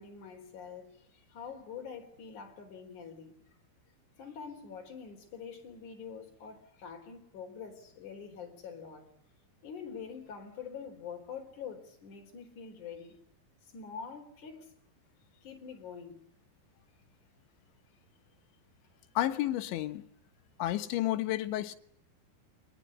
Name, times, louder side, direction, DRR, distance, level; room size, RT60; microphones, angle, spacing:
voice 1, 0.0-3.3 4.2-9.1 9.6-13.2 13.6-14.7 15.4-16.2, left 6 dB, 45° left, 5.2 m, -45 dB
voice 2, 19.2-20.0 20.6-21.8, left 14 dB, 85° left, 3.6 m, -31 dB
24.5 x 20.5 x 9.7 m
omnidirectional pair, 5.2 m